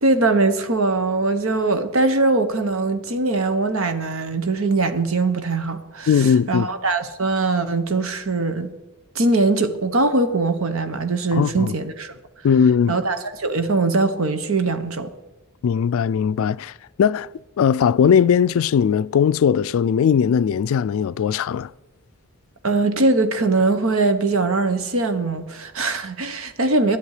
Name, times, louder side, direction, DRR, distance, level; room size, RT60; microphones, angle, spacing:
voice 1, 0.0-8.7 9.1-12.1 12.9-15.1 22.6-27.0, right 3 dB, 65° right, 1.2 m, -21 dB
voice 2, 6.1-6.7 11.3-11.7 12.4-13.0 15.6-16.7 17.0-17.3 17.6-21.7, left 7 dB, 65° left, 0.3 m, -19 dB
12.0 x 11.0 x 4.9 m
head